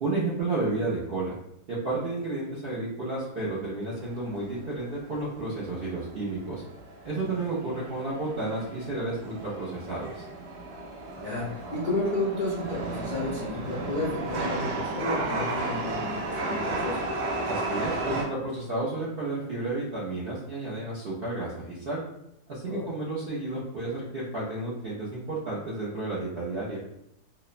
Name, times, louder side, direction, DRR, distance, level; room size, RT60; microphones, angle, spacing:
voice 1, 0.0-1.3 1.7-6.6 7.0-10.2 17.5-22.0 22.5-26.8, right 2 dB, 70° right, -7 dB, 0.5 m, -32 dB
Chatter / Subway metro underground, 4.0-18.2, right 2 dB, 90° right, 1.2 m, -34 dB
voice 2, 11.7-17.0 22.6-22.8, left 2 dB, 70° left, -8 dB, 0.4 m, -32 dB
3.0 x 2.0 x 2.4 m, 0.77 s
omnidirectional pair, 1.7 m